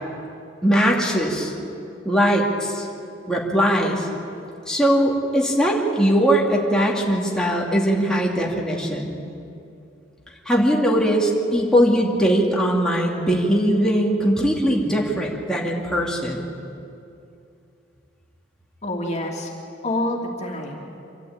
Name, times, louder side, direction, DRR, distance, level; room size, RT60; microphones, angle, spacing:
voice 1, 0.6-1.5 2.0-2.9 3.3-4.1 4.7-9.1 10.5-16.4, equal, 5° left, -3 dB, 2.6 m, -20 dB
voice 2, 18.8-19.5 19.8-21.0, left 1 dB, 40° left, 0 dB, 2.8 m, -27 dB
26.0 x 13.5 x 8.8 m, 2.6 s
head